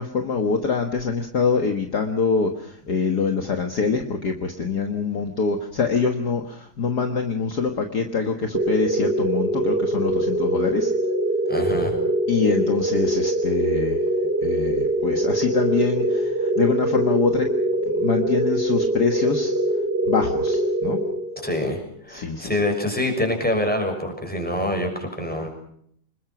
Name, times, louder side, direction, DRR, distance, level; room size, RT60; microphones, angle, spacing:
voice 1, 0.0-10.9 12.3-14.0 14.4-17.5 17.9-19.5 20.1-21.0 22.1-22.6, left 4 dB, 50° left, 4 dB, 2.1 m, -24 dB
sound 1, 8.5-21.7, right 1 dB, 30° right, 2.9 m, -23 dB
voice 2, 11.5-12.0 21.4-21.8 22.1-25.5, left 1 dB, 5° left, 3 dB, 6.5 m, -25 dB
26.5 x 21.5 x 6.0 m, 0.67 s
omnidirectional pair, 2.2 m